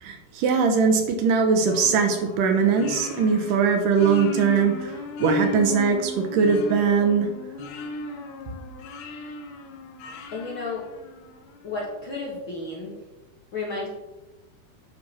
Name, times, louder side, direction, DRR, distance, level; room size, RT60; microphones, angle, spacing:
voice 1, 0.0-7.3, right 5 dB, 75° right, 4 dB, 2.3 m, -21 dB
sound 1, 1.7-11.5, left 2 dB, 90° left, 2.8 m, -34 dB
voice 2, 10.3-10.8 11.6-12.9 13.5-13.9, left 3 dB, 50° left, -4 dB, 1.6 m, -32 dB
9.7 x 6.0 x 4.3 m, 1.0 s
omnidirectional pair, 4.2 m